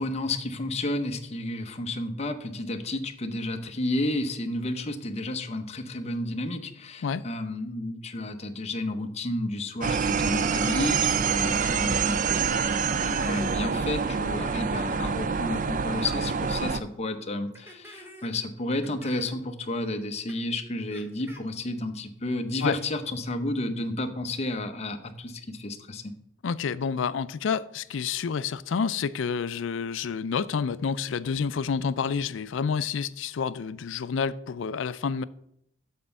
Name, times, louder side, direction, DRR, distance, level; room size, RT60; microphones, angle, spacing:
voice 1, 0.0-12.5 13.1-26.1, left 1 dB, 35° left, 0.8 m, -31 dB
sound 1, 9.8-16.8, right 5 dB, 40° right, 0.4 m, -26 dB
sound 2, 16.0-16.2 16.6-16.7 17.5-18.4 18.8-19.4 20.3-20.4 20.9-21.4, equal, 10° right, 1.2 m, -48 dB
voice 2, 26.4-35.2, left 6 dB, 65° left, 0.4 m, -29 dB
7.6 x 4.4 x 6.9 m
head